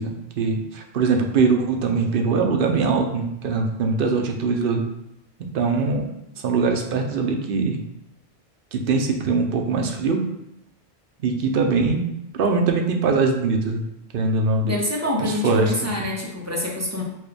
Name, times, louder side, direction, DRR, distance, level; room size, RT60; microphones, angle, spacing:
voice 1, 0.0-4.8 5.4-6.1 6.4-7.8 8.7-10.2 11.2-12.1 12.3-13.8 14.1-14.7 15.3-15.9, right 4 dB, 65° right, 3 dB, 0.7 m, -22 dB
voice 2, 14.6-17.0, left 1 dB, 20° right, -3 dB, 0.4 m, -26 dB
4.4 x 2.2 x 3.3 m, 0.84 s
omnidirectional pair, 1.1 m